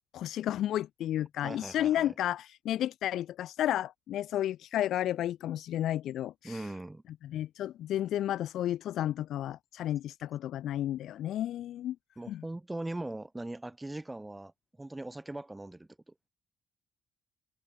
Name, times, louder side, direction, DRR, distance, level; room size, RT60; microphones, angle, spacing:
voice 1, 0.1-6.7 7.2-12.0 12.3-12.4, left 12 dB, 80° left, 0.5 m, -32 dB
voice 2, 1.4-2.1 6.4-7.0 12.2-14.5 14.8-16.1, right 2 dB, 15° right, 1.5 m, -40 dB
cardioid pair, 90°, 0 cm